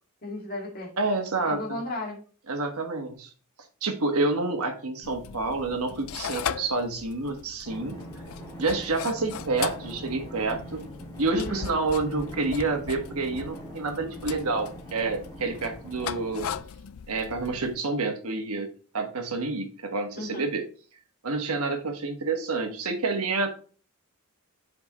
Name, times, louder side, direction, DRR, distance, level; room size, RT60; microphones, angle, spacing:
voice 1, 0.2-0.9 1.5-2.2 11.3-11.7 20.2-20.5, left 1 dB, 40° left, -1 dB, 2.0 m, -34 dB
voice 2, 1.0-1.8 2.5-3.3 3.8-7.9 8.6-10.8 11.2-16.5 17.1-18.7 18.9-20.6 21.2-23.6, right 3 dB, 80° right, 5 dB, 1.4 m, -28 dB
sound 1, 5.0-17.7, left 8 dB, 65° left, 0.4 m, -39 dB
Drum, 7.6-16.6, equal, 15° left, 1.8 m, -43 dB
7.3 x 5.2 x 3.0 m, 0.40 s
head